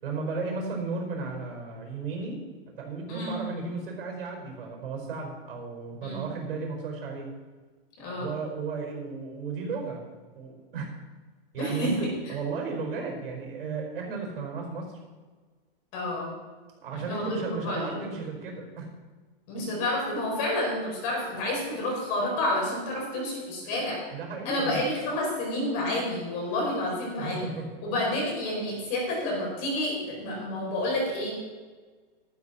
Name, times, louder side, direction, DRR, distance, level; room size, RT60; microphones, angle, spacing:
voice 1, 0.0-2.4 2.7-7.3 8.2-10.0 10.3-10.9 11.5-14.9 16.8-18.9 19.6-19.7 23.0-23.3 23.6-24.9 27.2-27.7, right 4 dB, 65° right, 2 dB, 5.1 m, -34 dB
voice 2, 3.1-3.4 6.0-6.3 8.0-8.3 11.6-12.1 15.9-16.3 16.9-18.1 19.5-24.0 24.4-27.5 27.8-31.3, left 1 dB, 30° left, -2 dB, 5.0 m, -29 dB
14.0 x 13.0 x 4.3 m, 1.4 s
supercardioid pair, 170°, 31 cm